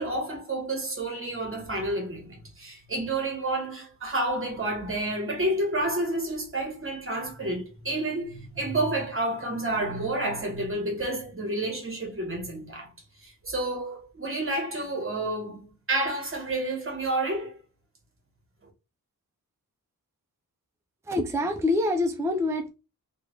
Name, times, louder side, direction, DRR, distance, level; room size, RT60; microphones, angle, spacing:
voice 1, 0.0-12.9 13.2-17.6, right 2 dB, 35° right, 1.3 m, -30 dB
voice 2, 21.1-22.7, left 2 dB, 10° right, 0.5 m, -25 dB
3.4 x 2.4 x 3.2 m
wide cardioid pair, 120°, 35 cm